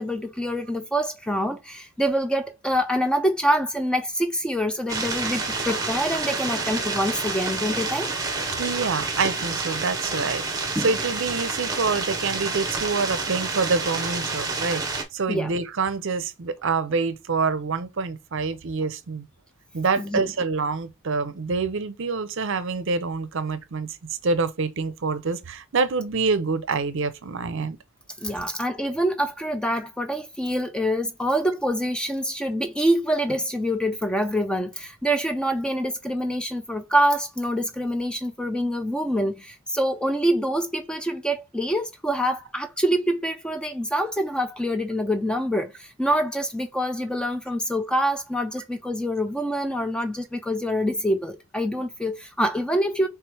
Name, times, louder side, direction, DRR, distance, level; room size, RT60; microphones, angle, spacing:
voice 1, 0.0-8.1 10.8-10.9 15.3-15.5 20.0-20.3 28.2-53.1, equal, 5° left, 0.4 m, -25 dB
sound 1, 4.9-15.0, right 3 dB, 15° right, 0.9 m, -28 dB
voice 2, 8.6-10.4 10.8-19.2 19.7-24.0 24.2-27.8, right 4 dB, 60° right, 0.6 m, -26 dB
3.3 x 3.2 x 4.7 m
head